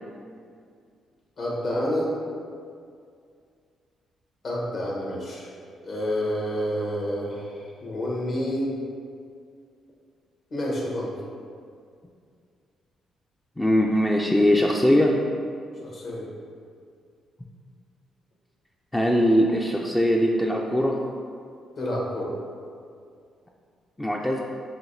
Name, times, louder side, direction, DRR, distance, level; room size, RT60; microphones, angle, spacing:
voice 1, 1.4-2.1 4.4-5.5 5.8-8.7 10.5-11.2 15.8-16.3 21.8-22.3, equal, 55° left, -4 dB, 1.0 m, -29 dB
voice 2, 13.6-15.2 18.9-21.0 24.0-24.4, equal, 10° left, -1 dB, 0.3 m, -21 dB
5.8 x 2.7 x 2.6 m, 2.3 s
cardioid pair, 90°, 0 cm